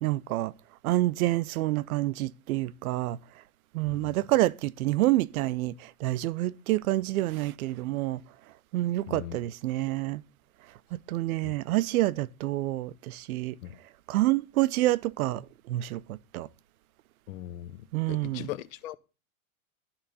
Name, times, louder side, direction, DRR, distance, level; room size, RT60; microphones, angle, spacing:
voice 1, 0.0-0.5 0.8-3.2 3.7-8.2 8.7-10.2 10.9-13.5 14.1-16.5 17.9-18.5, right 17 dB, 70° right, 0.6 m, -28 dB
voice 2, 9.1-9.4 11.4-11.5 13.6-13.8 17.3-19.0, left 13 dB, 60° left, 0.7 m, -40 dB
11.5 x 3.9 x 6.9 m
supercardioid pair, 160°, 44 cm